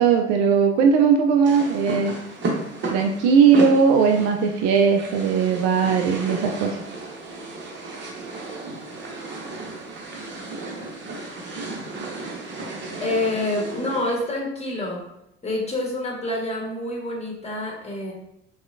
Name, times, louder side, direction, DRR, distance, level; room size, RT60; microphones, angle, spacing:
voice 1, 0.0-2.1 2.9-6.8, right 6 dB, 50° right, 4 dB, 0.5 m, -18 dB
sound 1, 1.4-14.3, right 2 dB, 35° right, 1.0 m, -33 dB
voice 2, 13.0-15.0 15.4-18.1, left 1 dB, 20° left, -1 dB, 1.3 m, -27 dB
6.1 x 2.3 x 2.6 m, 0.81 s
figure-of-eight pair, 55°, 33 cm